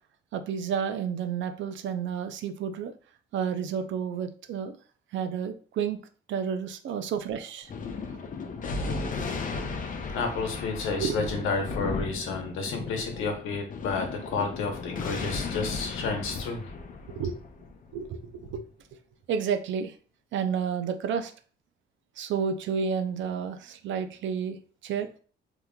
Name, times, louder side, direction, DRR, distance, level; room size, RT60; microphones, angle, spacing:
voice 1, 0.3-2.9 3.3-4.8 5.1-6.0 6.3-7.7 9.5-9.7 11.0-11.3 17.1-17.4 17.9-18.6 19.3-19.9 20.3-21.3 22.2-24.6 24.8-25.1, right 7 dB, 70° right, 9 dB, 0.5 m, -30 dB
Thunder, 7.7-18.5, left 4 dB, 40° left, 0.6 m, -35 dB
voice 2, 10.1-16.6, left 4 dB, 90° left, 3 dB, 1.0 m, -31 dB
3.6 x 2.9 x 2.3 m, 0.40 s
cardioid pair, 90°, 20 cm